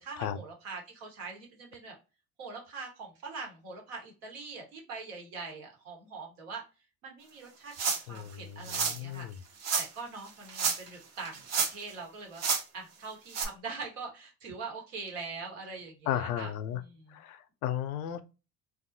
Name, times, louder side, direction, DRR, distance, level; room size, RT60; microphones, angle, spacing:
voice 1, 0.0-1.9 2.4-6.6 7.0-7.7 8.1-9.3 9.7-11.4 11.7-12.4 12.7-17.2, right 4 dB, 75° right, 1.2 m, -43 dB
sound 1, 7.7-8.2 8.6-9.0 9.6-9.9 10.5-11.0 11.3-11.9 12.4-12.6 13.3-13.5, right 5 dB, 35° right, 0.7 m, -30 dB
voice 2, 8.1-9.4 16.1-16.8 17.1-18.2, left 10 dB, 80° left, 0.5 m, -35 dB
2.5 x 2.3 x 2.6 m
hypercardioid pair, 65°, 44 cm